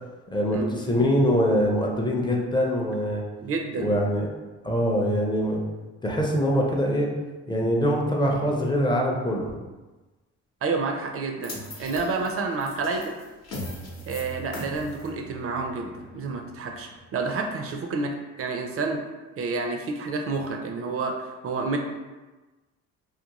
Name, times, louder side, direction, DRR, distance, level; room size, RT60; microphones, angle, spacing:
voice 1, 0.3-3.2 3.8-4.2 4.6-5.6 6.0-7.1 7.5-9.6, equal, 15° left, -1 dB, 0.5 m, -23 dB
voice 2, 3.4-3.9 10.6-13.1 14.1-19.0 19.4-21.8, right 3 dB, 50° right, 3 dB, 0.4 m, -29 dB
sound 1, 11.4-17.7, left 1 dB, 60° left, 0.8 m, -41 dB
2.5 x 2.2 x 2.9 m, 1.2 s
cardioid pair, 90°, 30 cm